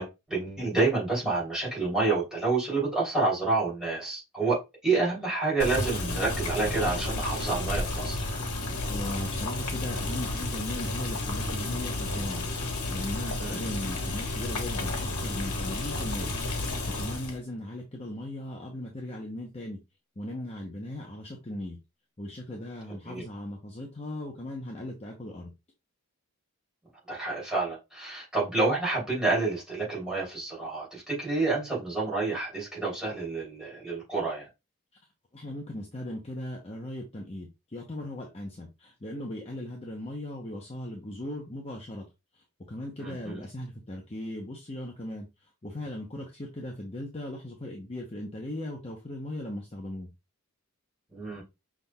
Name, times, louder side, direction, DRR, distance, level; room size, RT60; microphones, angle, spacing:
voice 1, 0.0-8.2 13.4-13.6 22.9-23.2 27.1-34.5 43.0-43.4 51.1-51.4, right 3 dB, 5° right, 3.1 m, -29 dB
Boiling, 5.6-17.4, left 2 dB, 85° left, 1.3 m, -32 dB
voice 2, 8.9-16.3 16.8-19.8 20.2-21.8 22.2-25.5 35.3-42.0 42.7-45.3 45.6-50.1, left 1 dB, 25° left, 0.7 m, -38 dB
5.9 x 3.6 x 2.3 m
head